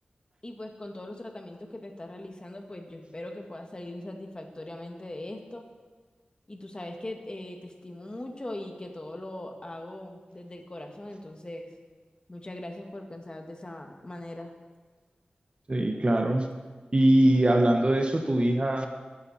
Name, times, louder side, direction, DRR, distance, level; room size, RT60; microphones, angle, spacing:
voice 1, 0.4-5.6 6.5-11.7 12.3-14.5, left 1 dB, 30° left, 3 dB, 1.9 m, -40 dB
voice 2, 15.7-16.5 16.9-18.9, right 1 dB, 35° right, 4 dB, 1.1 m, -22 dB
19.0 x 10.0 x 4.3 m, 1.4 s
wide cardioid pair, 75°, 3 cm